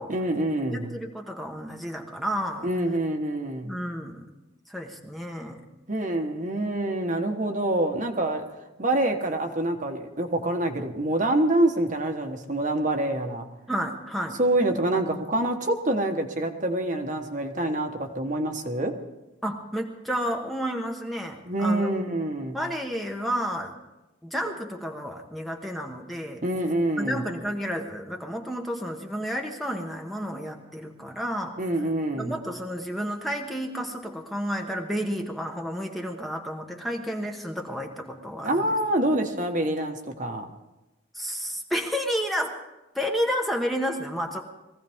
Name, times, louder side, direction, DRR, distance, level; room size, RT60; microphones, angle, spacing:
voice 1, 0.1-0.9 2.6-3.8 5.9-8.4 8.8-13.4 14.4-18.9 21.4-22.6 26.4-27.2 31.6-32.4 38.4-40.4, right 1 dB, 40° right, 4 dB, 1.2 m, -26 dB
voice 2, 0.7-2.7 3.6-4.2 4.7-5.7 13.7-14.4 19.4-21.9 22.5-23.8 24.2-26.4 27.0-31.6 32.2-38.7 41.1-42.6 42.9-44.4, equal, ahead, 2 dB, 1.1 m, -31 dB
22.5 x 16.0 x 3.6 m, 1.0 s
head